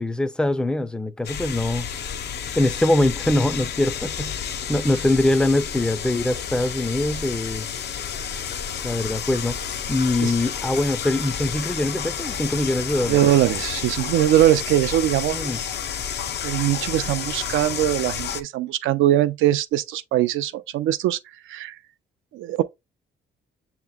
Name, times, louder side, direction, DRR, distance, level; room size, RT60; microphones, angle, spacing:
voice 1, 0.0-1.9 2.6-4.4 4.7-7.7 8.8-9.6 9.9-13.2 15.3-15.6, left 1 dB, 5° left, 0.4 m, -23 dB
sound 1, 1.2-18.4, left 8 dB, 60° left, 0.5 m, -30 dB
voice 2, 13.0-15.5 16.4-21.2 21.5-21.8 22.3-22.6, right 13 dB, 85° right, 0.5 m, -21 dB
6.8 x 2.9 x 2.2 m
cardioid pair, 90°, 20 cm